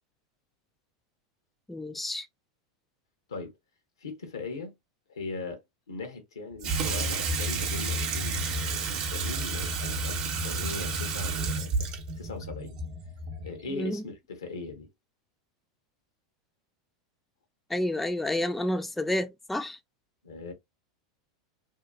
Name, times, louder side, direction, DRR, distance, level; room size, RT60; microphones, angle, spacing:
voice 1, 1.7-2.3 13.7-14.0 17.7-19.8, left 1 dB, 5° left, 0.3 m, -30 dB
voice 2, 4.0-4.7 5.1-5.6 5.9-11.9 12.1-12.8 13.4-14.9 20.2-20.5, left 3 dB, 85° left, 0.8 m, -39 dB
Water tap faucet / Sink (filling or washing), 6.6-13.6, right 3 dB, 45° right, 0.7 m, -31 dB
2.7 x 2.2 x 2.3 m
hypercardioid pair, 95°, 2 cm